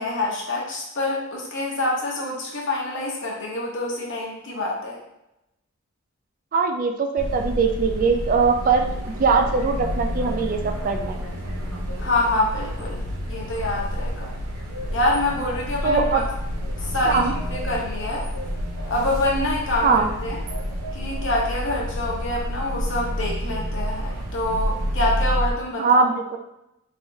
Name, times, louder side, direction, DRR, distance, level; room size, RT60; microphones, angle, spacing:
voice 1, 0.0-5.0 12.0-13.0 13.3-14.3 14.9-16.2 16.8-17.2 17.5-18.2 18.9-20.4 20.9-26.0, left 2 dB, 60° left, -3 dB, 0.8 m, -26 dB
voice 2, 6.5-8.9 9.2-11.2 15.8-16.2 17.0-17.3 19.8-20.1 25.8-26.4, right 4 dB, 40° right, 5 dB, 0.3 m, -21 dB
sound 1, 7.2-25.5, equal, 85° right, 0.6 m, -29 dB
3.4 x 3.4 x 2.6 m, 0.88 s
head